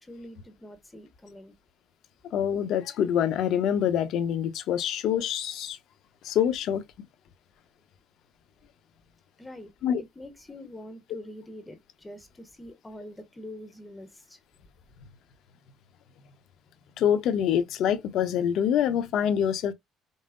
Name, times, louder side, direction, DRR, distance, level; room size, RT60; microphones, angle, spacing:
voice 1, 0.0-1.5 9.4-9.7 10.0-14.4, left 1 dB, 15° left, 0.8 m, -45 dB
voice 2, 2.3-5.8 6.2-6.8 9.8-10.0 17.0-19.7, left 9 dB, 65° left, 0.7 m, -25 dB
5.5 x 2.0 x 3.7 m
cardioid pair, 125°, 0 cm